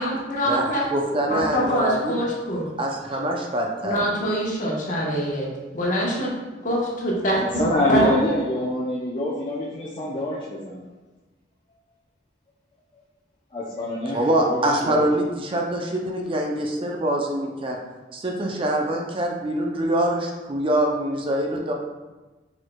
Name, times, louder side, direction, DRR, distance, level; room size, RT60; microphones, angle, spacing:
voice 1, 0.0-0.8 1.3-2.6 3.8-5.5 5.7-6.3 6.6-7.4 7.9-8.0, equal, 45° left, -4 dB, 1.1 m, -24 dB
voice 2, 0.9-2.2 2.8-4.3 14.1-17.8 18.1-21.7, right 1 dB, 30° right, 0 dB, 0.5 m, -24 dB
voice 3, 7.4-10.8 13.5-14.6 14.8-15.0, left 1 dB, 30° left, -6 dB, 0.6 m, -25 dB
4.5 x 4.4 x 2.2 m, 1.2 s
head